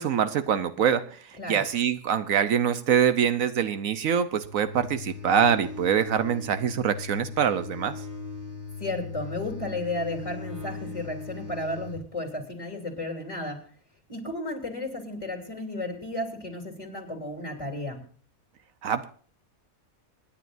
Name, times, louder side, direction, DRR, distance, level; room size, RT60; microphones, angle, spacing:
voice 1, 0.0-8.0 18.8-19.0, right 8 dB, 75° right, 12 dB, 1.2 m, -24 dB
sound 1, 4.4-12.0, left 4 dB, 10° right, 3.8 m, -39 dB
voice 2, 8.8-13.7 14.1-18.0, left 1 dB, 25° left, 3 dB, 3.2 m, -33 dB
27.0 x 10.0 x 2.6 m, 0.43 s
omnidirectional pair, 1.5 m